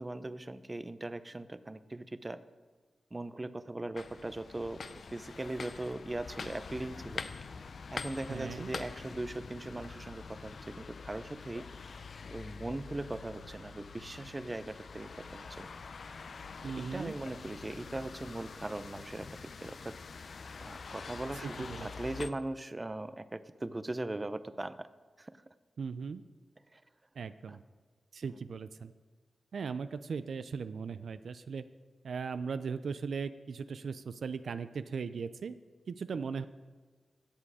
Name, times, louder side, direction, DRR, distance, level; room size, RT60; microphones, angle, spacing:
voice 1, 0.0-2.4 3.1-4.8 5.1-7.2 7.9-11.6 12.3-15.7 16.8-19.9 20.6-24.9 25.2-25.3 26.7-26.8 27.5-27.6 28.3-28.4, right 2 dB, 25° right, 13 dB, 0.6 m, -39 dB
sound 1, 4.0-22.3, left 4 dB, 70° left, 0.5 m, -45 dB
voice 2, 8.3-8.7 16.6-17.1 21.4-21.9 25.8-26.2 27.2-27.6 28.1-28.9 29.5-31.6 32.0-35.6 35.9-36.4, right 5 dB, 80° right, 12 dB, 0.4 m, -38 dB
15.5 x 7.7 x 4.8 m, 1.4 s
cardioid pair, 70°, 0 cm